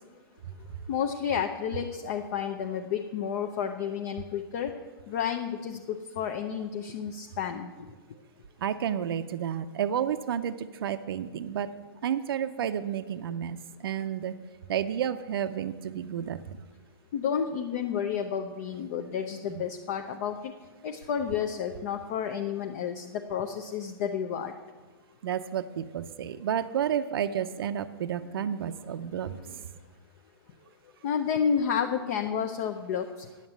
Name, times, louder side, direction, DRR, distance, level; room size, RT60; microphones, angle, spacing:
voice 1, 0.9-4.7 5.1-7.7 17.1-20.5 20.8-24.5 29.4-29.6 31.0-33.3, left 7 dB, 40° left, 5 dB, 0.6 m, -31 dB
voice 2, 8.6-11.7 12.0-14.3 14.7-16.4 19.5-19.6 25.2-29.4, right 9 dB, 70° right, 10 dB, 0.5 m, -31 dB
9.7 x 7.3 x 8.0 m, 1.3 s
hypercardioid pair, 160°, 13 cm